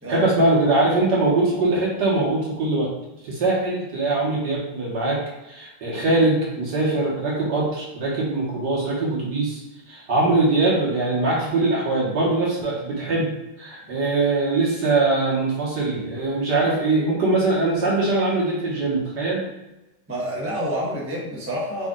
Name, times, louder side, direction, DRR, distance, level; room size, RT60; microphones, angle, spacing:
voice 1, 0.1-2.9 3.2-9.6 9.9-13.3 13.6-19.5, right 2 dB, 55° right, -5 dB, 1.7 m, -22 dB
voice 2, 20.1-21.9, equal, 15° right, -6 dB, 0.4 m, -28 dB
5.3 x 2.5 x 3.7 m, 0.99 s
omnidirectional pair, 2.3 m